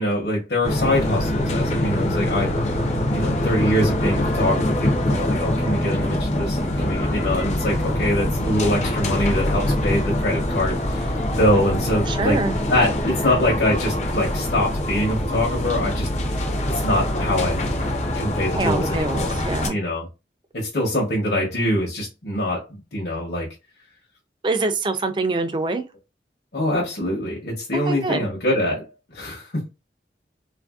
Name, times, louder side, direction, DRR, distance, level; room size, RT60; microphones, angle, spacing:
voice 1, 0.0-12.4 12.7-16.1 16.8-17.6 18.1-19.4 19.7-20.1 20.5-23.5 26.5-28.8 29.1-29.7, left 1 dB, 70° left, 0.9 m, -24 dB
sound 1, 0.6-19.7, left 1 dB, 40° left, 0.5 m, -24 dB
voice 2, 12.1-12.6 18.6-19.8 24.4-25.8 27.7-28.3, right 3 dB, 25° right, 0.3 m, -25 dB
3.3 x 2.5 x 2.3 m
head